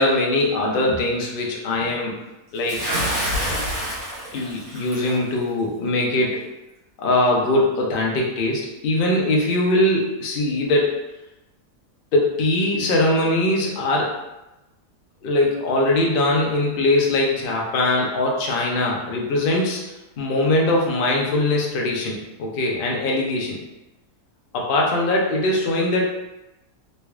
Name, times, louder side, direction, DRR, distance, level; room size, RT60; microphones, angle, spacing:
voice 1, 0.0-2.1 2.5-2.9 4.3-6.4 7.0-11.0 12.1-14.1 15.2-19.8 20.2-23.6 24.5-26.1, left 1 dB, 65° left, -2 dB, 0.5 m, -21 dB
Bathtub (filling or washing) / Splash splatter, 2.7-5.2, equal, 65° right, 1.5 m, -27 dB
3.3 x 3.0 x 2.3 m, 0.97 s
omnidirectional pair, 1.7 m